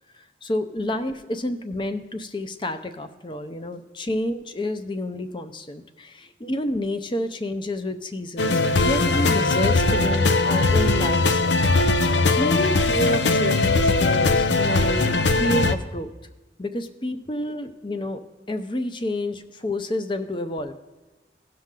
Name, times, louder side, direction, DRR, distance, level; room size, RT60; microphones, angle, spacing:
voice 1, 0.4-11.6 12.1-16.1 16.6-18.2 18.5-20.7, left 1 dB, 25° left, 9 dB, 0.6 m, -29 dB
sound 1, 8.4-15.8, left 3 dB, 85° left, 0.6 m, -20 dB
17.0 x 5.9 x 3.8 m, 1.2 s
head